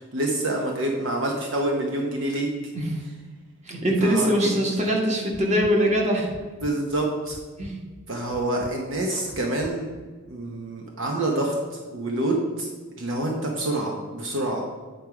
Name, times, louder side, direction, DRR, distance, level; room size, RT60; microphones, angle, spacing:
voice 1, 0.1-2.5 4.0-4.6 6.6-7.4 8.1-9.9 10.3-11.5 11.9-12.7 13.0-14.6, right 1 dB, 60° right, 1 dB, 0.9 m, -27 dB
voice 2, 3.6-6.3 7.6-7.8, equal, 30° right, -1 dB, 1.5 m, -22 dB
sound 1, 5.3-5.7 6.3-6.7 7.3-7.7 8.3-8.7 9.3-9.7, left 2 dB, 20° left, 0.3 m, -42 dB
8.9 x 4.6 x 4.9 m, 1.4 s
head